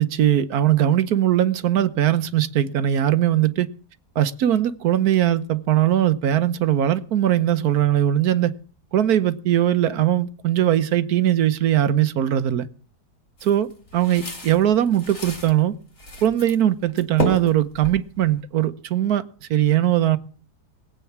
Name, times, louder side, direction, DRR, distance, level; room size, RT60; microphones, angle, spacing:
voice 1, 0.0-3.7 4.2-8.5 8.9-12.7 13.4-15.7 16.2-19.2 19.5-20.2, right 11 dB, 70° right, 1.3 m, -20 dB
sound 1, 13.4-15.5 16.0-16.6 16.9-18.4, left 2 dB, 50° left, 3.4 m, -31 dB
19.5 x 8.4 x 5.9 m
omnidirectional pair, 1.7 m